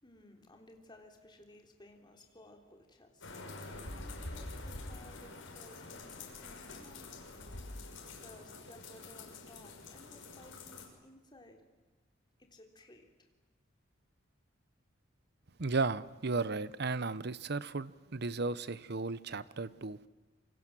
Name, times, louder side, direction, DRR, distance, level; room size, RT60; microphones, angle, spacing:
voice 1, 0.0-3.4 3.9-11.6 12.4-13.3, left 1 dB, 25° left, 3.7 m, -58 dB
sound 1, 3.2-10.9, left 2 dB, 90° left, 5.8 m, -46 dB
voice 2, 15.6-20.1, right 3 dB, 60° right, 0.9 m, -35 dB
27.5 x 25.0 x 7.6 m
head